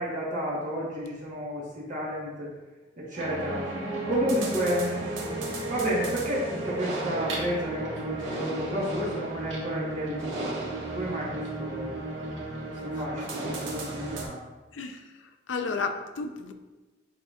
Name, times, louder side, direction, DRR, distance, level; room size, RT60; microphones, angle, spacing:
voice 1, 0.0-2.5 3.0-3.6 4.1-10.6 10.9-12.0 12.8-14.4, equal, 45° right, -6 dB, 1.4 m, -31 dB
sound 1, 3.2-14.2, right 2 dB, 85° right, 1.6 m, -33 dB
voice 2, 15.5-16.5, left 4 dB, 85° left, 6 dB, 0.6 m, -32 dB
10.5 x 4.2 x 2.5 m, 1.2 s
head